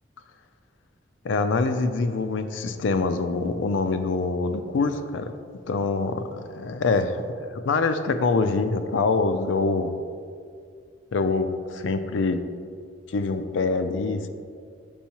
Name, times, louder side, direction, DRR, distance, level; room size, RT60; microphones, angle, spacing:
voice 1, 1.2-5.3 5.7-9.9 11.1-12.4 13.1-14.3, left 3 dB, 85° left, 9 dB, 0.4 m, -25 dB
6.9 x 5.4 x 2.9 m, 2.2 s
head